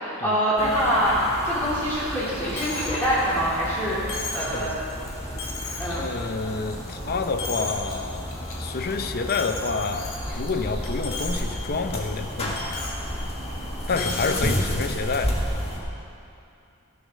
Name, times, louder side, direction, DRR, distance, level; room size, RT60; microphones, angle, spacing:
voice 1, 0.0-4.0 4.3-4.7 5.8-6.0 13.9-14.6, equal, 10° left, -10 dB, 2.8 m, -25 dB
sound 1, 0.6-15.8, equal, 30° left, 1.6 m, -31 dB
Coin (dropping), 2.6-3.0 3.3-3.4 4.1-4.6 5.1-5.2 5.4-6.0 6.4-6.9 7.2-7.9 8.3-8.5 9.3-10.5 10.8-11.4 11.7-11.8 12.6-13.0 13.9-14.4, left 4 dB, 65° left, 2.2 m, -34 dB
voice 2, 6.0-8.3 8.6-12.6 13.9-15.4, left 4 dB, 45° left, 7 dB, 0.7 m, -28 dB
15.5 x 7.0 x 6.4 m, 2.6 s
head